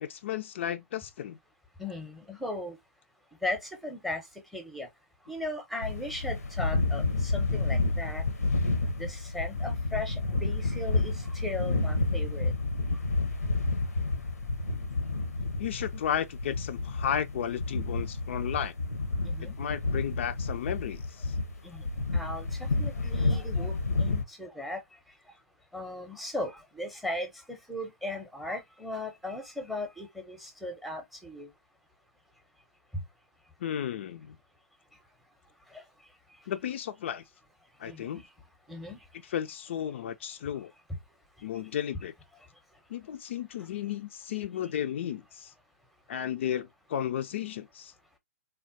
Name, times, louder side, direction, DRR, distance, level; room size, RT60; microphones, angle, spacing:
voice 1, 0.0-1.4 15.6-18.7 19.4-21.3 33.6-34.4 36.5-37.2 37.8-38.2 39.2-40.7 41.4-42.1 42.9-45.5 46.1-47.9, left 9 dB, 50° left, 0.4 m, -34 dB
voice 2, 1.8-2.8 3.4-4.2 4.5-4.9 5.3-8.2 9.0-12.5 19.3-19.6 21.6-21.9 22.1-24.8 25.7-31.5 35.7-35.8 37.9-38.2 38.7-39.0, left 1 dB, ahead, 0.7 m, -37 dB
sound 1, 5.8-24.2, left 3 dB, 80° left, 0.7 m, -30 dB
3.4 x 2.2 x 2.6 m
figure-of-eight pair, 120°, 8 cm